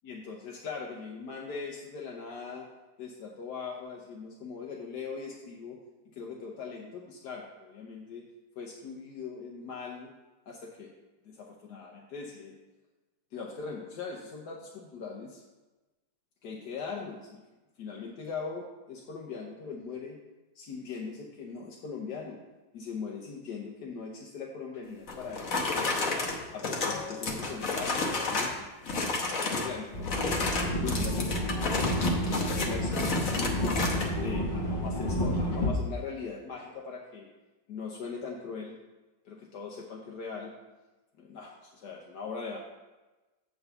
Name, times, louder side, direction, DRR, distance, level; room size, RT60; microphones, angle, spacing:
voice 1, 0.0-2.7 3.0-5.8 6.1-8.2 8.6-10.1 10.5-10.9 11.2-12.6 13.3-15.4 16.4-17.4 17.8-20.2 20.5-22.4 22.7-26.2 26.5-28.7 29.0-33.8 34.2-37.3 37.7-38.7 39.2-40.5 41.2-42.6, left 5 dB, 70° left, -1 dB, 1.4 m, -40 dB
sound 1, 25.1-28.6 28.8-29.7 30.0-34.1, left 3 dB, 55° left, 1.4 m, -31 dB
sound 2, 29.9-35.7, left 1 dB, 35° left, 1.0 m, -30 dB
8.2 x 4.0 x 6.7 m, 1.2 s
omnidirectional pair, 1.9 m